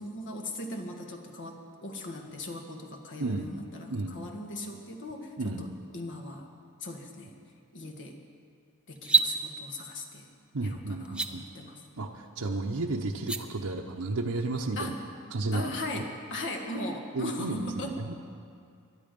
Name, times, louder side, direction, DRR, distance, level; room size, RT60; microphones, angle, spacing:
voice 1, 0.0-6.5 6.8-7.4 7.7-8.2 8.9-10.3 10.6-11.8 14.8-15.0 15.5-18.0, left 1 dB, 55° left, 3 dB, 1.7 m, -38 dB
sound 1, 9.0-9.3 11.0-11.3 13.1-13.4, right 5 dB, 5° right, 0.6 m, -24 dB
voice 2, 10.5-11.4 12.0-14.9 15.3-15.6 17.1-18.1, right 2 dB, 80° right, 0 dB, 0.9 m, -32 dB
22.0 x 11.0 x 5.3 m, 2.3 s
head